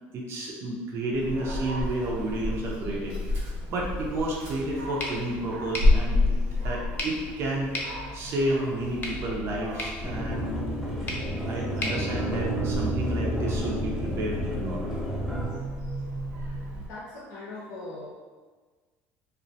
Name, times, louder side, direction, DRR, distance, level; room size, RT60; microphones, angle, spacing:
voice 1, 0.1-6.4 6.6-7.7 8.1-10.5 11.2-14.8 16.3-16.7, right 1 dB, 50° right, -2 dB, 0.5 m, -31 dB
Dog, 1.1-16.9, left 2 dB, 85° right, 0.7 m, -31 dB
sound 1, 5.0-13.0, left 1 dB, 35° left, 0.6 m, -39 dB
sound 2, 10.0-15.5, right 1 dB, ahead, 0.7 m, -30 dB
voice 2, 16.8-18.1, left 2 dB, 80° left, -6 dB, 0.6 m, -40 dB
2.4 x 2.1 x 2.6 m, 1.4 s
supercardioid pair, 100°, 6 cm